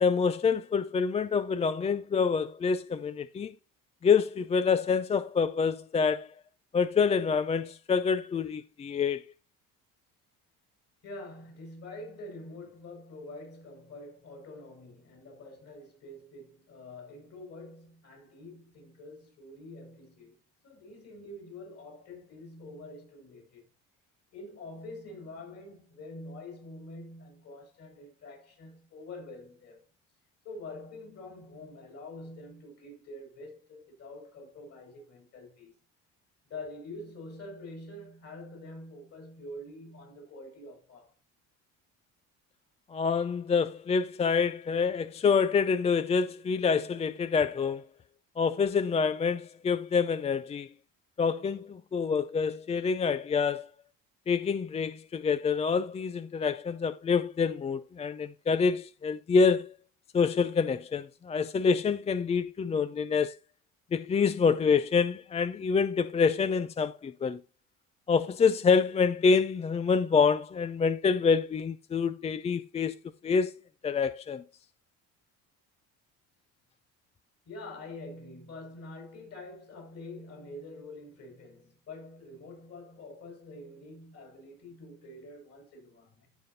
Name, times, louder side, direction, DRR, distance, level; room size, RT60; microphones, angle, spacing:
voice 1, 0.0-3.5 4.0-6.3 6.7-9.3 42.9-47.8 48.4-50.7 51.2-53.7 54.3-59.7 60.1-63.4 63.9-67.4 68.1-73.0 73.2-73.5 73.8-74.4, left 5 dB, 20° left, 0.3 m, -26 dB
voice 2, 11.0-20.4 20.6-23.6 24.3-29.8 30.4-35.7 36.5-41.1 77.5-86.3, left 2 dB, 45° left, 5.4 m, -46 dB
15.0 x 5.2 x 2.7 m
cardioid pair, 105°, 34 cm